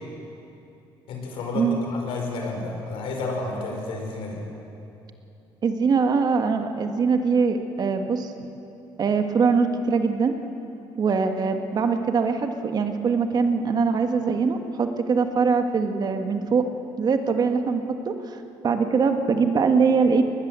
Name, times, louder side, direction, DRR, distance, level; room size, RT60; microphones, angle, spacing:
voice 1, 1.1-4.4, left 3 dB, 80° left, 1 dB, 5.1 m, -31 dB
voice 2, 5.6-8.3 9.0-10.4 11.0-16.7 17.0-18.4 18.6-20.2, right 5 dB, 45° right, 6 dB, 1.8 m, -22 dB
21.5 x 19.5 x 7.7 m, 2.8 s
cardioid pair, 100°, 9 cm